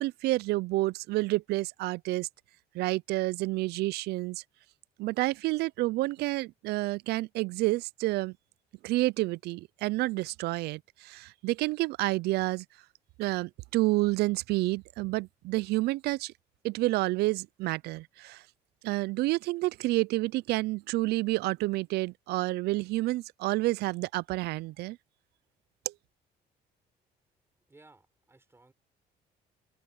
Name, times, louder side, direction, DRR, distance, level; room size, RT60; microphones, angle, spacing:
voice 1, 0.0-2.3 2.7-4.4 5.0-8.4 8.8-12.6 13.2-16.3 16.6-18.4 18.8-25.0 25.9-26.0, right 19 dB, 75° right, 0.4 m, -29 dB
voice 2, 27.7-28.7, right 2 dB, 15° right, 6.4 m, -59 dB
open air
cardioid pair, 110°, 17 cm